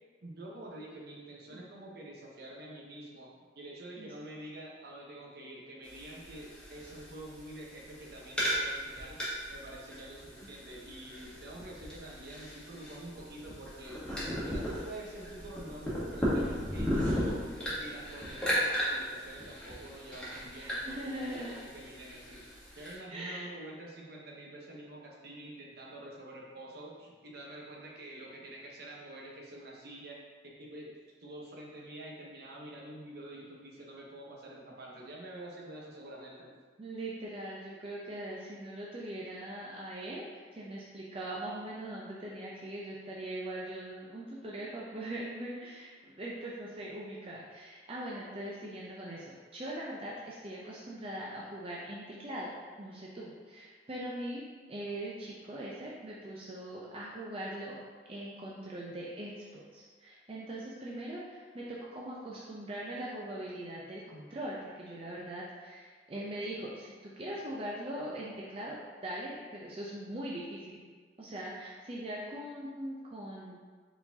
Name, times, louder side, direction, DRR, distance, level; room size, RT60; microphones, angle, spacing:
voice 1, 0.2-9.2 9.5-17.4 17.8-22.5 22.8-30.9 31.2-36.5, right 1 dB, 60° right, -3 dB, 0.9 m, -47 dB
sound 1, 5.8-22.9, equal, 5° left, 1.2 m, -36 dB
voice 2, 20.6-21.5 23.1-23.5 36.8-54.4 54.7-57.8 58.1-70.8 71.2-73.6, right 1 dB, 30° right, -5 dB, 0.5 m, -41 dB
4.7 x 3.9 x 2.7 m, 1.5 s
head